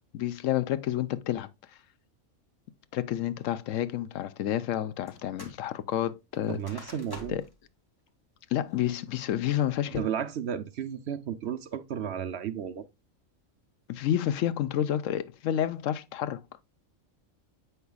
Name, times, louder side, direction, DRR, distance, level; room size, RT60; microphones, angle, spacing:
voice 1, 0.1-1.5 2.9-6.9 7.3-7.4 8.5-10.1 13.9-16.4, left 11 dB, 80° left, 1.0 m, -29 dB
sound 1, 5.1-5.6 5.9-7.6 8.1-8.2 8.7-9.1 9.6-10.0, left 1 dB, 20° left, 1.5 m, -47 dB
voice 2, 6.5-7.3 9.9-12.8, right 9 dB, 65° right, 0.9 m, -33 dB
8.1 x 5.6 x 2.3 m
omnidirectional pair, 1.3 m